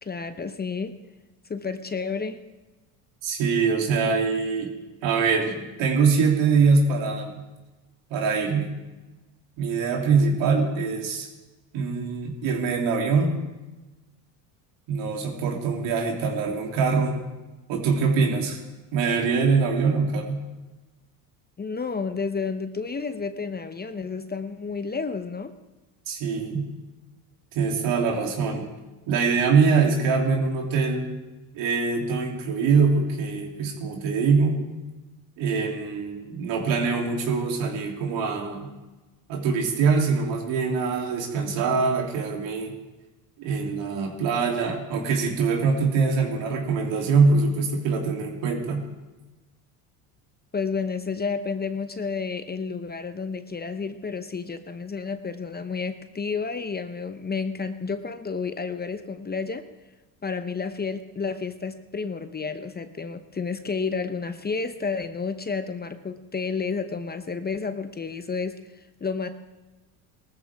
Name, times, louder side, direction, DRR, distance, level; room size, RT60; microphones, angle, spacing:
voice 1, 0.0-0.9 1.5-2.4 21.6-25.5 50.5-59.7 60.2-69.3, left 5 dB, 20° left, 10 dB, 0.8 m, -31 dB
voice 2, 3.2-4.7 5.0-7.4 8.1-8.7 9.6-11.3 11.7-13.3 14.9-17.2 17.7-18.6 18.9-20.4 26.1-26.7 27.5-28.7 29.1-31.2 31.5-34.6 35.4-38.7 39.3-42.7 43.4-48.8, right 5 dB, 70° right, 1 dB, 3.1 m, -23 dB
19.0 x 14.0 x 3.6 m, 1.1 s
supercardioid pair, 85°, 45 cm